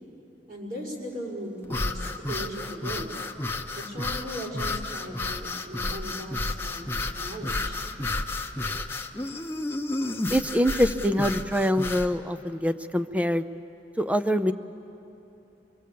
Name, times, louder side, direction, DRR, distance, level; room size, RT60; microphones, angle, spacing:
voice 1, 0.5-3.1 3.7-6.9 7.1-7.8, equal, 55° right, -3 dB, 5.5 m, -38 dB
sound 1, 1.6-12.1, left 2 dB, 15° left, 0.9 m, -31 dB
voice 2, 10.3-13.4 14.0-14.5, equal, 10° right, 11 dB, 0.6 m, -24 dB
24.5 x 23.5 x 8.5 m, 2.9 s
head